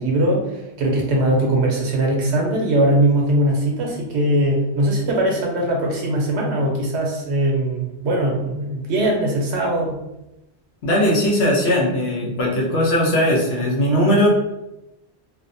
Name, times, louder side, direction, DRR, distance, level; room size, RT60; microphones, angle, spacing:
voice 1, 0.0-10.0, right 1 dB, 75° right, 0 dB, 1.0 m, -20 dB
voice 2, 10.8-14.3, equal, 70° left, -2 dB, 0.9 m, -19 dB
2.6 x 2.1 x 2.6 m, 0.91 s
omnidirectional pair, 1.1 m